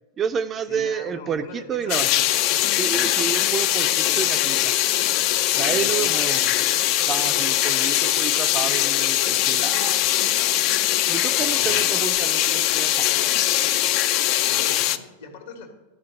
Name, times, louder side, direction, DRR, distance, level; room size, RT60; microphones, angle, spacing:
voice 1, 0.2-2.1 2.8-4.7 5.5-6.4 7.1-10.0 11.1-13.2, right 7 dB, 25° right, 10 dB, 0.4 m, -30 dB
voice 2, 0.7-2.3 3.9-4.5 5.5-6.7 11.3-11.8 14.4-15.7, left 2 dB, 65° left, 4 dB, 1.6 m, -41 dB
sound 1, 1.9-15.0, left 13 dB, 45° left, 0.4 m, -21 dB
11.0 x 5.1 x 6.6 m, 1.1 s
figure-of-eight pair, 90°, 0 cm